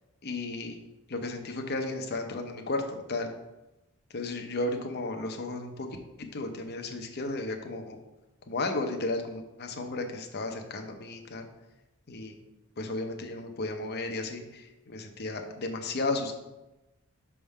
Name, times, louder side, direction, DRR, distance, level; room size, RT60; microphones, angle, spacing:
voice 1, 0.2-0.8 1.1-2.8 3.1-3.3 4.1-5.9 6.3-8.0 8.5-11.5 12.1-12.4 12.8-16.4, left 2 dB, 45° left, 4 dB, 0.7 m, -34 dB
5.9 x 3.6 x 5.4 m, 0.99 s
head